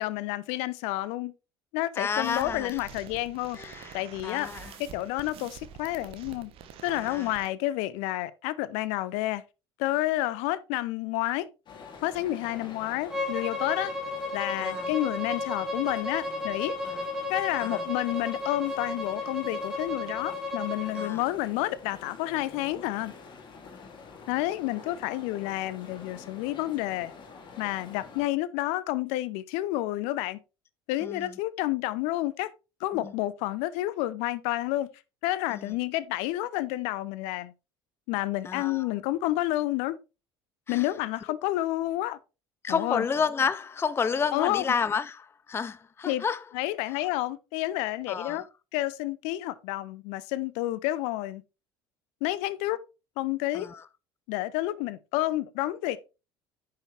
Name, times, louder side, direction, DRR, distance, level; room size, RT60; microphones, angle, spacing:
voice 1, 0.0-1.3 1.7-4.5 4.8-6.5 6.8-9.4 9.8-11.5 12.0-13.9 14.3-16.8 17.3-23.1 24.3-27.1 27.6-30.4 30.9-32.5 32.8-34.9 35.2-37.5 38.1-40.0 40.7-42.2 42.7-43.0 44.3-44.6 46.0-46.2 46.5-48.4 48.7-51.4 52.2-52.8 53.2-53.7 54.3-56.0, left 16 dB, 60° left, 0.7 m, -30 dB
voice 2, 2.0-2.9 3.5-4.0 4.2-4.8 6.9-7.3 14.6-14.9 16.8-17.1 17.6-17.8 20.9-21.2 23.7-23.9 31.0-31.4 32.9-33.1 35.5-35.7 38.4-38.9 40.7-40.9 42.6-46.5 46.9-47.1 48.1-48.4 53.5-53.8, left 6 dB, 20° left, 0.5 m, -31 dB
sound 1, 2.2-7.5, right 8 dB, 50° right, 1.3 m, -47 dB
sound 2, 11.7-28.3, left 5 dB, 40° left, 2.3 m, -48 dB
Bowed string instrument, 13.1-21.1, left 2 dB, 5° right, 2.2 m, -33 dB
9.8 x 5.7 x 3.3 m
figure-of-eight pair, 65°, 12 cm